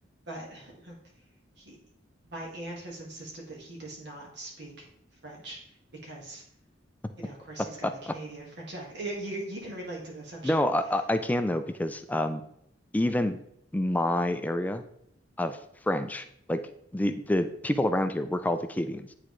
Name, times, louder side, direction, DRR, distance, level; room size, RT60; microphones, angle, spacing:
voice 1, 0.3-1.0 1.6-1.8 2.3-4.9 5.2-5.6 6.0-6.4 7.2-10.6, right 2 dB, 60° right, -2 dB, 1.6 m, -40 dB
voice 2, 7.8-8.1 10.4-12.4 12.9-13.4 13.7-14.8 15.4-15.6 15.9-16.6 16.9-19.1, left 1 dB, 10° left, 9 dB, 0.3 m, -27 dB
9.6 x 3.7 x 3.1 m, 0.71 s
head